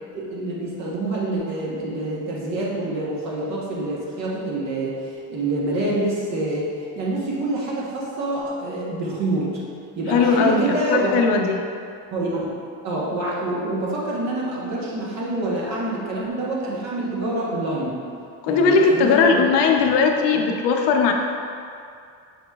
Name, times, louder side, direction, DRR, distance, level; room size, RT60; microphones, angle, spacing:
voice 1, 0.1-9.6 10.0-11.2 12.1-12.5 12.8-18.0 18.5-19.4, right 2 dB, 40° right, -4 dB, 1.0 m, -26 dB
voice 2, 10.1-11.6 18.4-21.1, left 5 dB, 85° left, 3 dB, 0.6 m, -18 dB
6.0 x 4.0 x 2.2 m, 2.4 s
cardioid pair, 160°, 41 cm